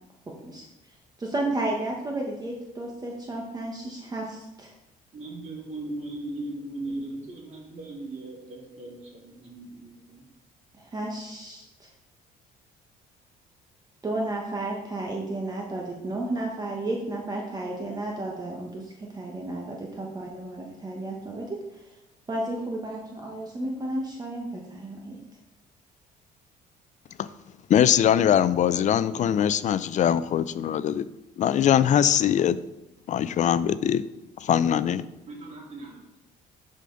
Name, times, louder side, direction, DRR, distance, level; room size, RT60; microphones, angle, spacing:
voice 1, 0.3-0.6 1.2-4.7 10.9-11.9 14.0-21.9 22.3-25.2, right 2 dB, 25° right, -1 dB, 1.2 m, -32 dB
voice 2, 5.1-10.3 35.3-36.1, right 2 dB, 40° right, -3 dB, 3.1 m, -38 dB
voice 3, 27.7-31.1 31.4-32.6 33.1-34.0 34.4-35.0, left 9 dB, 45° left, 16 dB, 0.4 m, -22 dB
10.5 x 5.0 x 3.9 m, 0.92 s
cardioid pair, 110°, 17 cm